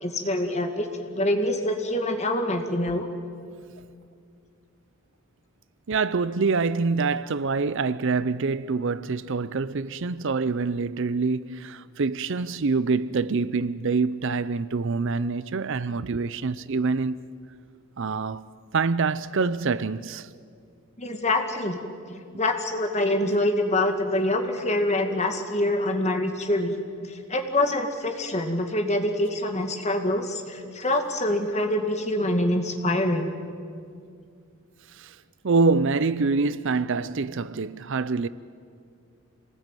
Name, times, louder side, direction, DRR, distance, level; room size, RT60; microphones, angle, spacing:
voice 1, 0.0-3.1 21.0-21.8 22.1-26.8 27.1-33.3, left 1 dB, 30° left, 2.2 m, -25 dB
voice 2, 5.9-17.2 18.0-18.5 18.7-20.3 34.9-35.2 35.4-38.3, right 4 dB, 55° right, 0.5 m, -25 dB
26.5 x 19.5 x 9.1 m
head